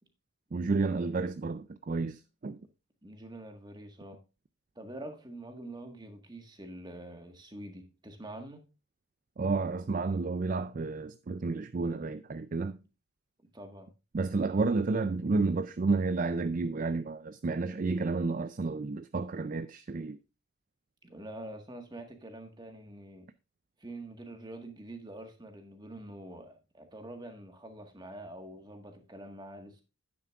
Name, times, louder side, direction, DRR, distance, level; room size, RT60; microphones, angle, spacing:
voice 1, 0.5-2.6 9.4-12.8 14.1-20.2, right 3 dB, 35° right, 0.4 m, -31 dB
voice 2, 3.0-4.2 4.7-8.6 13.5-13.9 21.0-23.3 23.8-29.8, right 1 dB, 20° right, 1.6 m, -45 dB
11.0 x 9.4 x 2.4 m
head